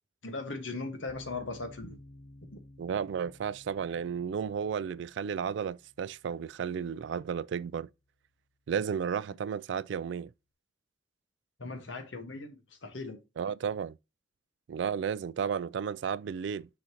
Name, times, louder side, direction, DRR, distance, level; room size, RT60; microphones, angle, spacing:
voice 1, 0.2-2.0 2.5-2.6 11.6-13.2, left 3 dB, 90° left, 1.4 m, -39 dB
sound 1, 1.1-8.2, left 1 dB, 50° left, 0.6 m, -55 dB
voice 2, 2.8-7.9 8.7-10.3 13.4-14.0 14.7-16.7, right 7 dB, 70° right, 0.3 m, -33 dB
6.3 x 5.7 x 2.9 m
head